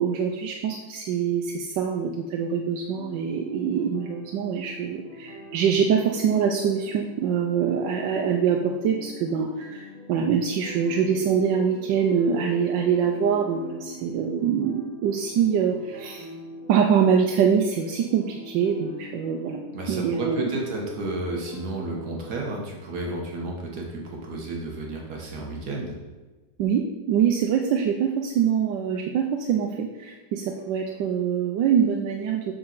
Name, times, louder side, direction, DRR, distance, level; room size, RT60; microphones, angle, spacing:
voice 1, 0.0-16.3 16.7-19.6 19.9-20.5 26.6-32.5, right 7 dB, 85° right, 2 dB, 1.3 m, -24 dB
sound 1, 3.0-22.3, equal, 35° left, 1.9 m, -44 dB
voice 2, 19.7-26.0, right 2 dB, 65° right, -1 dB, 1.6 m, -32 dB
7.1 x 6.3 x 4.0 m, 1.2 s
omnidirectional pair, 1.9 m